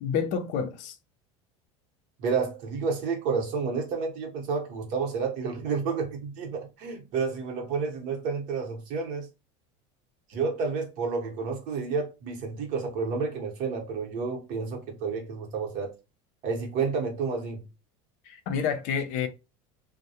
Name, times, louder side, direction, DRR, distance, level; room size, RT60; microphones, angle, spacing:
voice 1, 0.0-1.0 18.3-19.3, left 7 dB, 60° left, 0.5 m, -29 dB
voice 2, 2.2-9.3 10.3-15.9 16.4-17.7, right 5 dB, 55° right, 0.9 m, -30 dB
2.2 x 2.0 x 2.8 m
supercardioid pair, 135°, 15 cm